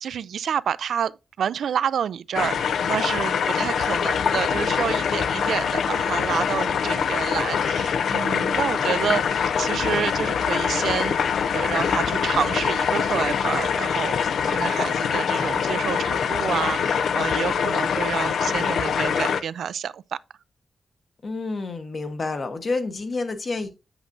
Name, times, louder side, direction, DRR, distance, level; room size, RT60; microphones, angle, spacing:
voice 1, 0.0-1.1 1.4-11.1 11.5-20.2, right 8 dB, 90° right, 0.3 m, -28 dB
sound 1, 2.3-19.4, left 7 dB, 85° left, 0.4 m, -24 dB
voice 2, 21.2-23.7, left 3 dB, 40° left, 1.1 m, -29 dB
8.0 x 7.4 x 2.6 m
wide cardioid pair, 160°, 0 cm